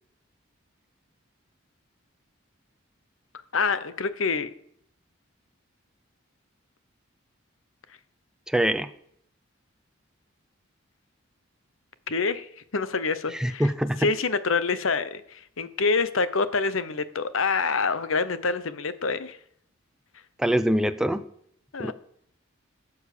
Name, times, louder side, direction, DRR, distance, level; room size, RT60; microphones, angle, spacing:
voice 1, 3.5-4.5 12.1-13.7 14.0-19.4 21.7-21.9, left 4 dB, 75° left, 13 dB, 0.9 m, -26 dB
voice 2, 8.5-8.9 13.3-14.0 20.4-21.2 21.8-21.9, right 1 dB, 5° right, 11 dB, 0.5 m, -24 dB
17.0 x 7.2 x 6.6 m, 0.69 s
head